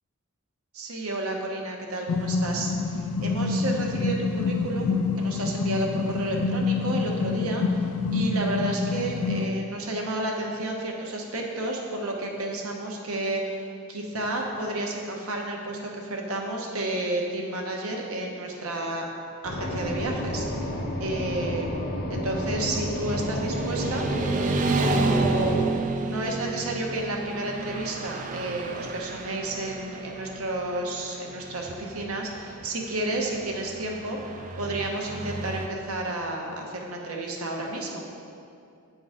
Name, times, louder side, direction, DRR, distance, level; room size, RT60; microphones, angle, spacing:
voice 1, 0.7-19.0 19.4-21.7 22.1-25.6 26.0-38.1, right 2 dB, 80° right, 0 dB, 1.0 m, -31 dB
sound 1, 2.1-9.5, left 4 dB, 85° left, 0.4 m, -27 dB
sound 2, 19.4-25.7, left 1 dB, 45° left, 0.7 m, -31 dB
Motorcycle / Traffic noise roadway noise, 22.5-35.7, right 3 dB, 35° right, 0.3 m, -31 dB
8.6 x 3.9 x 4.9 m, 2.4 s
head